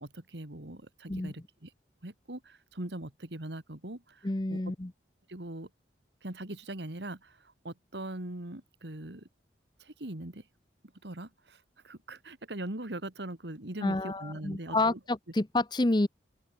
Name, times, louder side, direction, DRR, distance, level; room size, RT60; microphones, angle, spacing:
voice 1, 0.0-1.7 2.0-4.6 5.3-5.7 6.2-9.3 9.8-10.4 11.0-15.0, right 1 dB, 75° right, 2.3 m, -41 dB
voice 2, 4.2-4.9 13.8-16.1, left 2 dB, 25° left, 0.7 m, -29 dB
open air
head